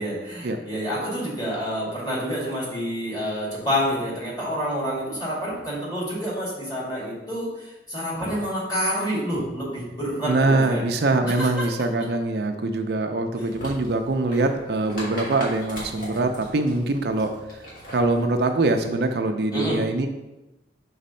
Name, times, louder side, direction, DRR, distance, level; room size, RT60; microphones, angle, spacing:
voice 1, 0.0-10.8 11.2-11.6 19.5-19.8, equal, 20° left, -6 dB, 2.1 m, -28 dB
voice 2, 10.2-17.3 17.9-20.1, right 2 dB, 60° right, 5 dB, 0.5 m, -23 dB
sound 1, 13.4-18.8, left 1 dB, 50° left, 2.1 m, -40 dB
5.1 x 4.0 x 5.5 m, 1.0 s
head